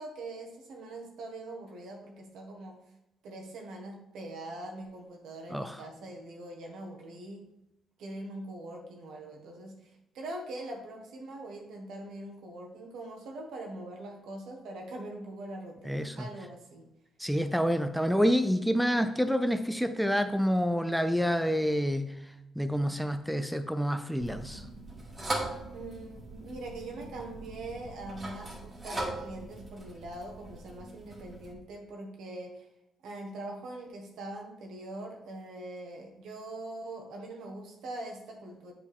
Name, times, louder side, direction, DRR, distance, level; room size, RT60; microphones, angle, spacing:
voice 1, 0.0-2.8 3.2-7.5 8.0-16.8 25.7-32.7 33.0-38.7, right 2 dB, 80° right, 1 dB, 1.5 m, -42 dB
voice 2, 15.9-16.3 17.2-22.1 22.6-24.6, equal, ahead, 9 dB, 0.5 m, -28 dB
sound 1, 24.2-31.5, right 2 dB, 30° right, 1.9 m, -40 dB
8.2 x 4.6 x 3.6 m, 0.89 s
cardioid pair, 90°, 0 cm